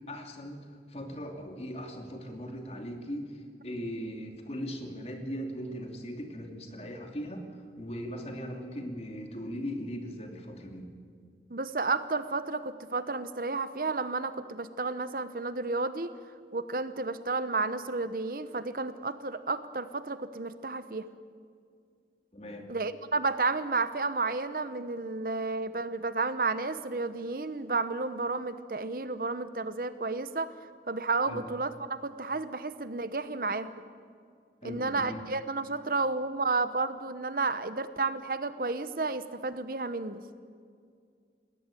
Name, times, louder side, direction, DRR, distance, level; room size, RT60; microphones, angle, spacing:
voice 1, 0.1-10.9 22.3-22.7 31.3-31.5 34.6-35.2, equal, 35° left, 4 dB, 2.7 m, -39 dB
voice 2, 11.5-16.1 16.5-21.0 22.7-30.5 30.9-33.7 34.6-40.2, right 3 dB, 55° right, 13 dB, 0.9 m, -32 dB
21.5 x 17.0 x 9.1 m, 2.2 s
head